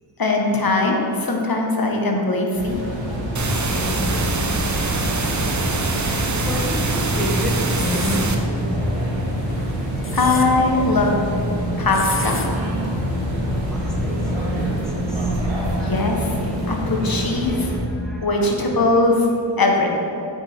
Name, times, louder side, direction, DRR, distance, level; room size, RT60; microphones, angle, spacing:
voice 1, 0.2-2.8 10.1-11.2 11.8-12.4 15.8-16.4 16.7-17.7 18.2-19.3 19.6-19.9, left 2 dB, 50° left, 1 dB, 1.3 m, -20 dB
sound 1, 2.6-17.8, equal, 85° right, 1.8 m, -25 dB
sound 2, 3.3-8.3, right 3 dB, 40° right, 0.8 m, -24 dB
voice 2, 3.5-4.5 5.8-10.1 13.5-15.4 16.2-19.0, left 1 dB, ahead, -3 dB, 1.4 m, -33 dB
sound 3, 7.7-8.2 9.8-10.5 11.9-12.5, left 3 dB, 30° left, 0.8 m, -31 dB
9.3 x 7.1 x 3.6 m, 2.8 s
wide cardioid pair, 90°, 45 cm